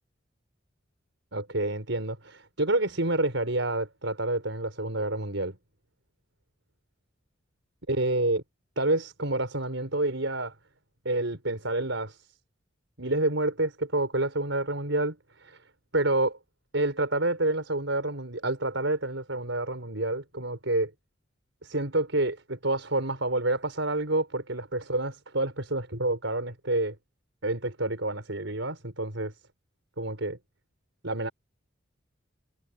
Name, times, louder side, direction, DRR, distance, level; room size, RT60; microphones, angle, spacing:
voice 1, 1.3-5.6 7.9-8.4 8.8-10.5 11.0-12.2 13.0-15.6 15.9-16.4 16.7-20.9 21.6-26.9 27.4-29.3 30.0-30.4 31.0-31.3, right 2 dB, 80° right, 5.0 m, -28 dB
head